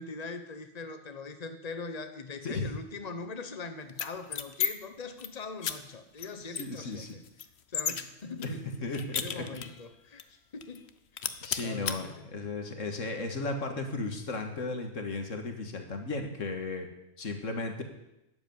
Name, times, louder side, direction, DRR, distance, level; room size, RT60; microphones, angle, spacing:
voice 1, 0.0-7.2 7.7-11.3 11.6-12.3, left 4 dB, 35° left, 8 dB, 1.2 m, -42 dB
sound 1, 3.9-4.7 5.0-5.3 5.6-5.7 6.2-6.3 6.5-8.0 8.4-9.8 10.2-10.3 10.6-10.9 11.2-12.0, left 8 dB, 60° left, 1.1 m, -33 dB
voice 2, 6.4-7.1 8.4-8.5 8.8-9.4 11.4-16.9 17.2-17.8, left 3 dB, 85° left, 5 dB, 2.2 m, -35 dB
12.0 x 8.2 x 9.6 m, 0.89 s
omnidirectional pair, 1.3 m